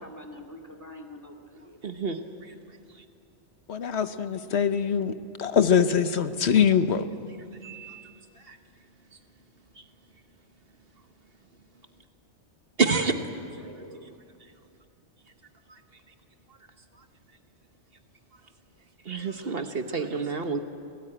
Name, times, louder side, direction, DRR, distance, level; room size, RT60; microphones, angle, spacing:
voice 1, 0.0-1.8 13.1-14.1, left 1 dB, 15° left, 3 dB, 2.2 m, -45 dB
voice 2, 1.8-2.2 7.6-8.0 8.4-8.6 12.8-13.2 19.0-20.6, right 4 dB, 55° right, 7 dB, 1.3 m, -28 dB
voice 3, 3.7-5.1 5.4-7.1, left 7 dB, 65° left, 11 dB, 1.2 m, -23 dB
26.5 x 18.0 x 8.9 m, 2.5 s
omnidirectional pair, 1.2 m